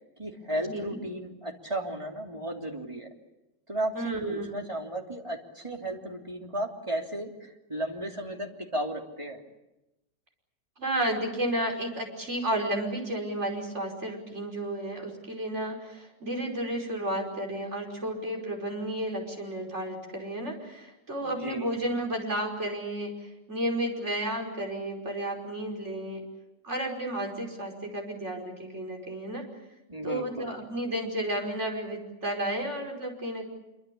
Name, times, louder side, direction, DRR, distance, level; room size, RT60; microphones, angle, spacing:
voice 1, 0.2-3.1 3.7-9.4 21.2-21.7 29.9-30.5, right 1 dB, 15° right, 2 dB, 3.1 m, -34 dB
voice 2, 3.9-4.6 10.8-26.2 26.6-29.5 30.0-33.5, right 1 dB, 40° right, 1 dB, 5.6 m, -32 dB
26.5 x 24.5 x 8.6 m, 0.94 s
omnidirectional pair, 1.9 m